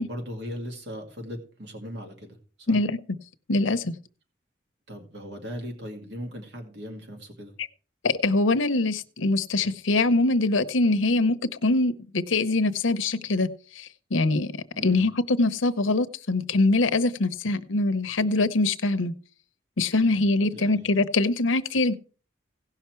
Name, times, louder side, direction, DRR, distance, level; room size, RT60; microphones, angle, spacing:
voice 1, 0.0-2.4 2.7-2.8 4.9-7.5 14.7-15.1 20.0-20.2 20.5-20.9, equal, 60° right, 2.3 m, -38 dB
voice 2, 2.7-3.0 3.5-3.9 8.0-11.4 11.6-13.5 13.7-14.5 14.8-19.1 19.8-21.9, left 2 dB, 90° left, 0.8 m, -23 dB
17.0 x 5.8 x 4.5 m
head